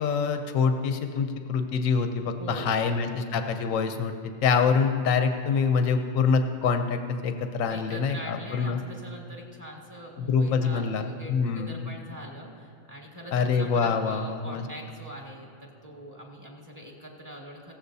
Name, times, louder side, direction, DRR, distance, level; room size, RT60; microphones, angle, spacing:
voice 1, 0.0-8.8 10.2-11.7 13.3-14.6, left 5 dB, 90° left, 7 dB, 1.1 m, -25 dB
voice 2, 2.4-2.8 7.7-17.7, equal, 15° right, -2 dB, 1.6 m, -42 dB
16.5 x 14.5 x 2.7 m, 2.5 s
omnidirectional pair, 1.4 m